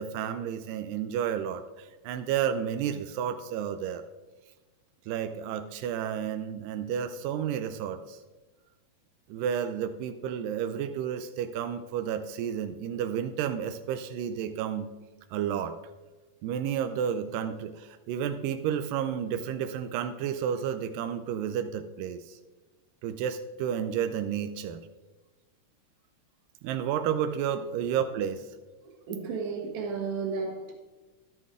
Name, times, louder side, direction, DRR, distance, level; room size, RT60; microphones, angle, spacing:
voice 1, 0.0-4.0 5.1-8.2 9.3-14.9 15.3-15.8 16.4-22.4 23.0-24.8 26.6-28.5, right 8 dB, 90° right, 9 dB, 2.2 m, -31 dB
voice 2, 28.8-30.7, right 5 dB, 60° right, 1 dB, 2.5 m, -33 dB
11.5 x 7.7 x 3.6 m, 1.2 s
omnidirectional pair, 3.8 m